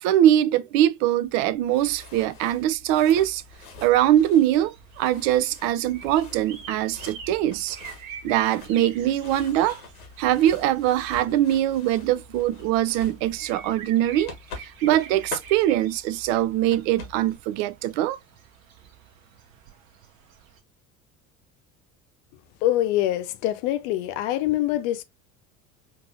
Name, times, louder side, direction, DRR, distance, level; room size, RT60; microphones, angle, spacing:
voice 1, 0.0-3.4 3.8-7.8 8.2-9.8 10.2-14.3 14.6-18.2, right 12 dB, 45° right, 0.4 m, -22 dB
sound 1, 1.2-17.4, left 3 dB, 75° left, 1.2 m, -45 dB
sound 2, 3.1-20.6, right 7 dB, 65° right, 0.9 m, -47 dB
voice 2, 22.6-25.0, left 14 dB, 50° left, 0.6 m, -24 dB
4.5 x 2.7 x 2.6 m
figure-of-eight pair, 65°, 43 cm